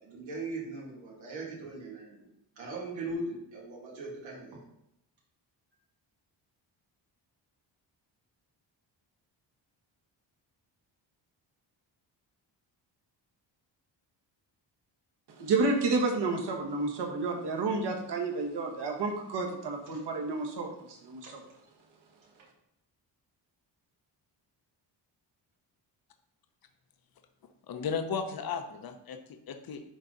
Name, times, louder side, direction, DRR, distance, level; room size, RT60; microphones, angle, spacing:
voice 1, 0.0-2.3 2.6-4.6 19.9-20.0, right 2 dB, 90° right, -4 dB, 2.6 m, -39 dB
voice 2, 15.4-21.3, right 3 dB, 60° right, 2 dB, 1.6 m, -30 dB
voice 3, 27.7-29.8, left 6 dB, 50° left, 6 dB, 0.9 m, -35 dB
11.0 x 3.9 x 4.0 m, 0.81 s
cardioid pair, 125°, 45 cm